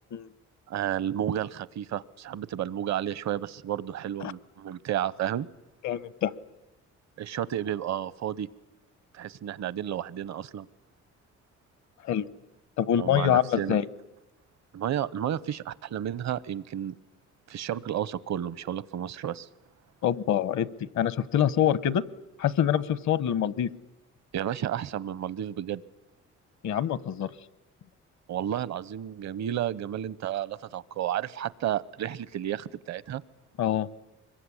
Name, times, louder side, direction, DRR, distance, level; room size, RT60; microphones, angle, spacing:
voice 1, 0.7-5.5 7.2-8.5 9.1-10.7 13.0-13.8 14.7-16.9 17.5-19.5 24.3-25.8 28.3-33.2, right 11 dB, 65° right, 20 dB, 0.9 m, -32 dB
voice 2, 5.8-6.3 12.0-12.3 12.8-13.8 20.0-20.7 21.0-22.0 22.4-23.7 26.6-27.3 33.6-33.9, left 10 dB, 70° left, 19 dB, 1.0 m, -25 dB
25.0 x 22.5 x 9.9 m, 0.95 s
cardioid pair, 90°, 30 cm